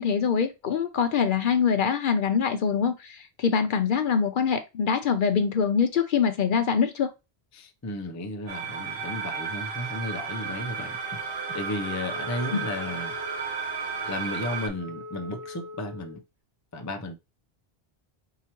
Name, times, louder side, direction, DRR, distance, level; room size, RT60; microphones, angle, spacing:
voice 1, 0.0-7.1 12.5-12.6, left 6 dB, 60° left, 0.6 m, -24 dB
voice 2, 7.5-13.2 14.0-16.2 16.7-17.1, left 2 dB, 25° left, 0.4 m, -34 dB
sound 1, 8.5-14.7, right 5 dB, 65° right, 1.3 m, -33 dB
Wind instrument woodwind instrument, 12.1-16.2, left 2 dB, 85° right, 1.3 m, -42 dB
4.7 x 2.8 x 2.9 m
omnidirectional pair, 1.1 m